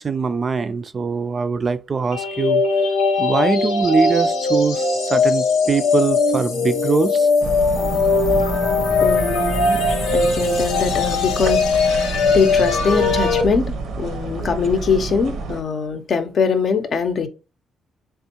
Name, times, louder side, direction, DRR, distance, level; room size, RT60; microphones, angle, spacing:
voice 1, 0.0-2.6 3.2-7.3, right 5 dB, 40° right, 0.3 m, -22 dB
sound 1, 2.1-13.4, left 4 dB, 85° left, 0.8 m, -20 dB
sound 2, 7.4-15.6, right 3 dB, 80° right, 0.6 m, -28 dB
voice 2, 9.0-9.8 10.1-17.3, left 5 dB, 55° left, 0.5 m, -22 dB
3.5 x 3.4 x 2.8 m
cardioid pair, 90°, 0 cm